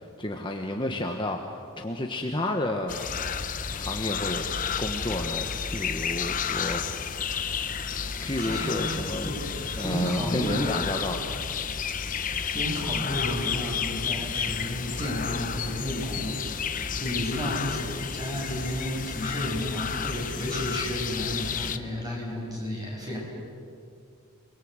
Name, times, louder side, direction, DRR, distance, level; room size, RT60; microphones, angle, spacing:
voice 1, 0.2-3.1 3.7-4.4 4.8-6.8 7.5-7.6 8.2-9.3 9.8-11.4, left 1 dB, 20° left, 2 dB, 1.4 m, -31 dB
sound 1, 2.9-21.8, left 6 dB, 35° left, 0.9 m, -31 dB
voice 2, 8.2-8.8 9.2-10.8 12.5-16.5 17.0-23.2, equal, 15° right, -2 dB, 7.0 m, -32 dB
29.0 x 22.0 x 8.2 m, 2.3 s
head